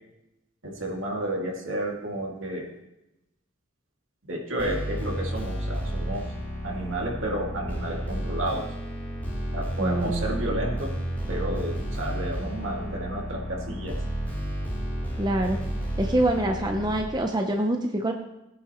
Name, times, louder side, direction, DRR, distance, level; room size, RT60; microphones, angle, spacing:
voice 1, 0.6-2.7 4.2-6.3 6.6-8.8 9.5-10.9 11.3-14.0, right 1 dB, 75° right, -1 dB, 2.3 m, -31 dB
sound 1, 4.6-17.0, equal, 10° left, 3.5 m, -31 dB
voice 2, 9.8-10.2 15.2-15.6 16.0-18.1, right 1 dB, 20° right, 3 dB, 0.7 m, -25 dB
17.0 x 9.5 x 3.0 m, 0.91 s
head